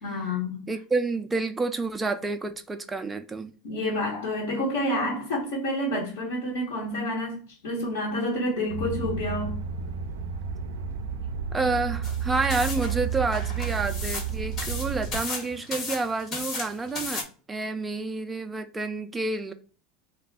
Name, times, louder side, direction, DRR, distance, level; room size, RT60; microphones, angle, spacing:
voice 1, 0.0-0.7 3.6-9.5, left 1 dB, 75° left, 1.2 m, -29 dB
voice 2, 0.7-3.5 11.5-19.5, right 3 dB, 15° right, 0.4 m, -29 dB
sound 1, 8.7-15.2, right 7 dB, 80° right, 0.4 m, -31 dB
sound 2, 12.0-17.2, left 3 dB, 45° left, 1.2 m, -35 dB
2.4 x 2.3 x 3.6 m
hypercardioid pair, 90°, 0 cm